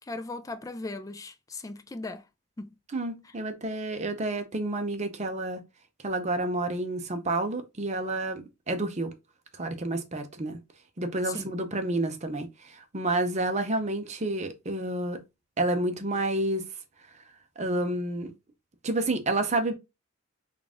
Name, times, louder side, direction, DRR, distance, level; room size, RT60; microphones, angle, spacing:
voice 1, 0.0-2.3 2.6-2.7 3.2-3.3 11.2-11.5, left 3 dB, 15° left, 0.3 m, -38 dB
voice 2, 2.9-5.6 6.0-9.1 9.6-10.6 11.0-15.2 15.6-16.6 17.6-18.3 18.8-19.7, right 2 dB, 35° right, 0.7 m, -29 dB
3.9 x 2.5 x 3.5 m
head